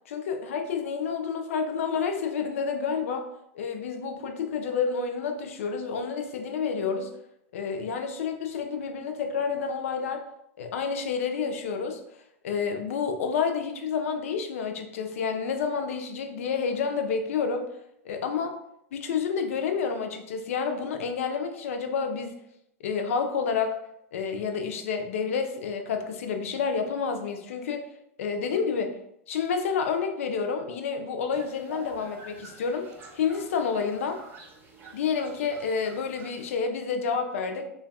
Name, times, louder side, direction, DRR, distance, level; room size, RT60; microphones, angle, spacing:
voice 1, 0.1-3.3 3.5-7.1 7.5-10.2 10.6-12.0 12.4-17.7 18.0-18.6 18.9-22.4 22.8-23.8 24.1-27.9 28.2-29.0 29.3-32.9 33.2-34.2 34.9-37.7, left 5 dB, 70° left, 6 dB, 0.4 m, -29 dB
sound 1, 31.3-36.5, right 3 dB, 30° right, 0.7 m, -48 dB
3.3 x 2.2 x 2.2 m, 0.78 s
hypercardioid pair, 95°, 8 cm